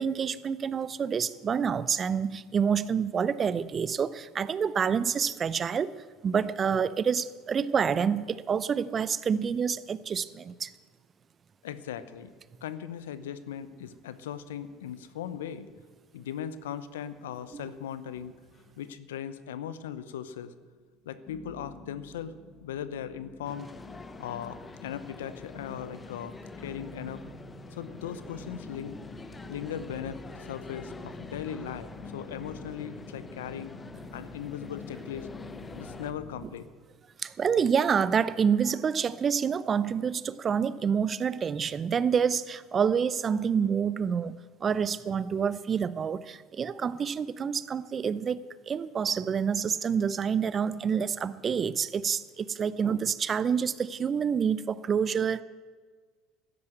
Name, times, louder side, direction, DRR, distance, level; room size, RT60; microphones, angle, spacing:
voice 1, 0.0-5.9 6.2-10.7 17.5-17.6 37.2-55.4, right 7 dB, 35° right, 17 dB, 0.6 m, -28 dB
voice 2, 11.6-12.3 12.6-15.7 16.1-18.3 18.8-20.5 21.1-23.7 24.2-27.2 27.7-29.0 29.5-33.7 34.1-35.3 35.8-36.7, left 9 dB, 85° left, 13 dB, 0.8 m, -38 dB
sound 1, 18.1-19.0 19.3-19.9 20.4-20.5 21.3-36.4, left 2 dB, 45° left, 5.8 m, -47 dB
sound 2, 23.4-36.1, left 3 dB, 25° left, 0.9 m, -47 dB
12.5 x 10.5 x 7.9 m, 1.5 s
hypercardioid pair, 75°, 0 cm